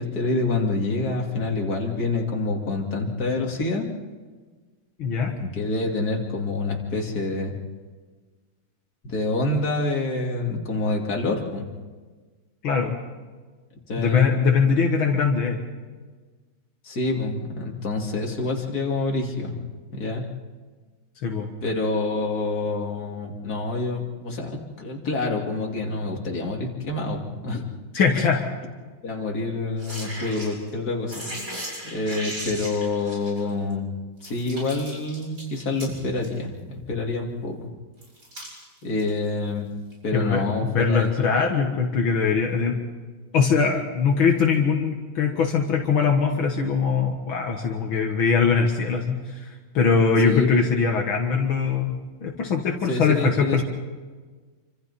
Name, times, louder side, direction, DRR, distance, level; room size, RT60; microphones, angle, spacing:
voice 1, 0.0-3.9 5.4-7.5 9.0-11.7 13.9-14.4 16.8-19.7 19.9-20.2 21.6-27.7 29.0-31.2 31.9-33.9 34.2-37.7 38.8-39.7 40.0-41.4 50.2-50.6 52.9-53.6, left 3 dB, 45° left, 0 dB, 3.1 m, -27 dB
voice 2, 5.0-5.4 12.6-13.0 14.0-15.6 21.2-21.5 27.9-28.4 40.1-42.8 43.3-49.4 49.7-53.6, left 5 dB, 75° left, 1 dB, 2.4 m, -22 dB
sound 1, 29.8-30.7 31.1-33.7 34.2-36.3 38.0-39.1 39.9-40.0, equal, 40° right, 6.6 m, -36 dB
27.5 x 25.5 x 4.3 m, 1.4 s
omnidirectional pair, 2.2 m